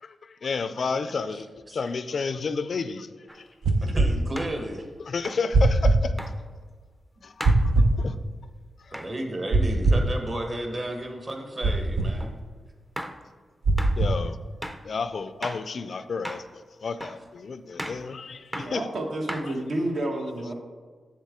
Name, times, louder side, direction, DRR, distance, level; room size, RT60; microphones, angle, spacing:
voice 1, 0.0-3.1 3.3-3.5 5.0-6.1 7.2-7.3 8.0-8.2 8.9-9.0 14.0-14.4 14.8-18.9 19.5-19.6, left 4 dB, 55° left, 11 dB, 0.3 m, -31 dB
sound 1, 3.3-3.4 4.4-4.6 5.2-5.5 6.2-6.4 7.4-7.7 8.9-9.1 12.2-12.3 13.0-13.2 13.8-14.0 14.6-14.9 15.4-15.7 16.2-16.5 17.0-17.2 17.8-18.1 18.5-18.8 19.3-19.8, equal, 5° right, 0.5 m, -36 dB
sound 2, 3.6-4.1 5.5-6.0 7.4-7.9 9.5-10.1 11.6-12.1 13.6-14.2, right 2 dB, 90° right, 0.7 m, -20 dB
voice 2, 3.8-4.9 8.9-12.3, right 1 dB, 30° right, 3 dB, 1.1 m, -32 dB
voice 3, 18.3-20.5, right 1 dB, 70° right, 1 dB, 1.3 m, -30 dB
7.4 x 7.3 x 3.6 m, 1.5 s
wide cardioid pair, 120°, 0 cm